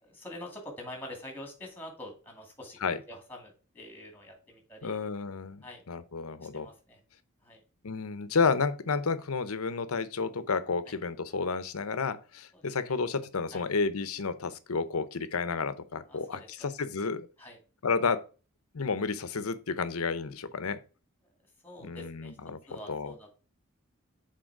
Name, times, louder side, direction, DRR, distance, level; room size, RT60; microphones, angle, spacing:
voice 1, 0.0-4.9 5.6-5.8 6.4-7.0 7.4-7.6 10.9-11.0 12.5-13.0 13.5-13.6 16.1-16.7 17.4-17.6 21.6-22.4 22.7-23.3, left 1 dB, 10° left, 2.2 m, -46 dB
voice 2, 4.8-6.7 7.8-17.3 17.8-18.2 18.7-20.8 21.8-23.1, left 4 dB, 75° left, 0.7 m, -31 dB
6.4 x 4.1 x 4.7 m
head